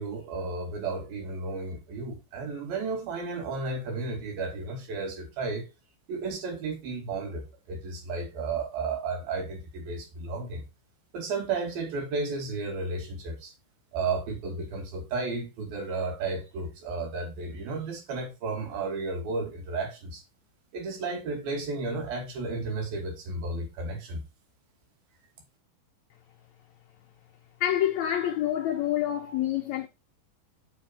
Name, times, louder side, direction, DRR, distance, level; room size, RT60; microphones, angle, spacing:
voice 1, 0.0-5.7 6.1-10.6 11.1-13.5 13.9-20.2 20.7-24.2, right 3 dB, 80° right, 4.1 m, -33 dB
voice 2, 27.6-29.9, left 11 dB, 85° left, 1.6 m, -27 dB
6.7 x 6.4 x 4.5 m
omnidirectional pair, 4.2 m